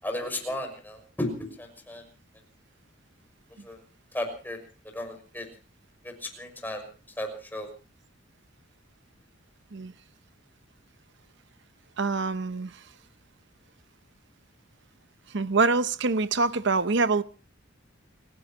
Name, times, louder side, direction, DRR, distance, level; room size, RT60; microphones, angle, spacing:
voice 1, 0.0-2.0 3.6-3.8 4.1-4.6 4.9-5.5 6.0-6.9 7.2-7.7, left 1 dB, 10° left, 6.0 m, -34 dB
voice 2, 12.0-12.7 15.3-17.2, right 3 dB, 60° right, 0.8 m, -25 dB
30.0 x 16.5 x 3.0 m
head